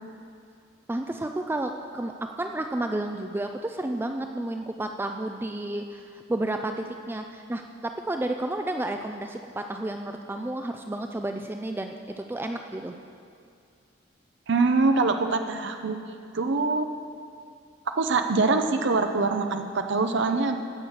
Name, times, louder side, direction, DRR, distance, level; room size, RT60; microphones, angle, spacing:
voice 1, 0.9-2.1 2.4-12.9, right 1 dB, 10° right, 5 dB, 0.4 m, -31 dB
voice 2, 14.5-16.0 16.3-16.9 17.9-20.5, right 3 dB, 65° right, 6 dB, 0.7 m, -24 dB
16.0 x 6.2 x 6.5 m, 2.3 s
head